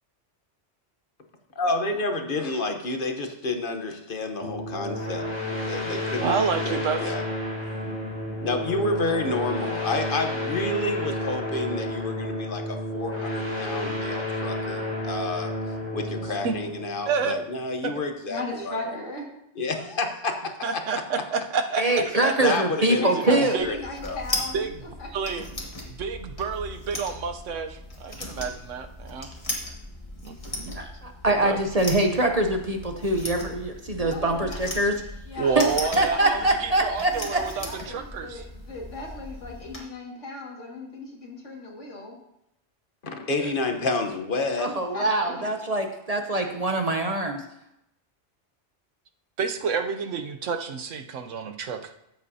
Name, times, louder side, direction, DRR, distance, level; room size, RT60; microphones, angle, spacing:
voice 1, 1.6-5.3 5.6-6.4 6.6-7.2 8.4-15.5 15.9-18.7 19.6-20.8 22.4-23.1 23.6-23.8 24.0-24.2 43.0-44.7, left 2 dB, 50° left, 5 dB, 1.1 m, -29 dB
sound 1, 4.4-17.7, left 1 dB, 55° right, 3.8 m, -31 dB
voice 2, 6.2-7.1 16.4-16.6 17.1-17.4 17.8-17.9 20.6-21.8 22.2-22.3 23.3-23.7 24.5-24.8 25.1-25.4 25.9-29.3 30.2-30.8 31.3-31.6 35.4-38.4 43.4-43.5 49.4-51.9, right 5 dB, 85° right, 6 dB, 1.1 m, -29 dB
voice 3, 18.3-19.3 22.3-22.4 22.9-25.1 34.0-34.6 35.3-36.5 37.1-42.2 44.7-45.5, left 2 dB, 80° left, -1 dB, 2.4 m, -37 dB
voice 4, 21.8-23.6 30.7-35.0 35.6-35.7 36.0-37.4 44.6-47.4, right 2 dB, 35° right, 4 dB, 0.8 m, -24 dB
sound 2, 23.6-39.8, left 1 dB, 30° left, 1.7 m, -37 dB
13.0 x 8.2 x 2.8 m, 0.82 s
omnidirectional pair, 1.2 m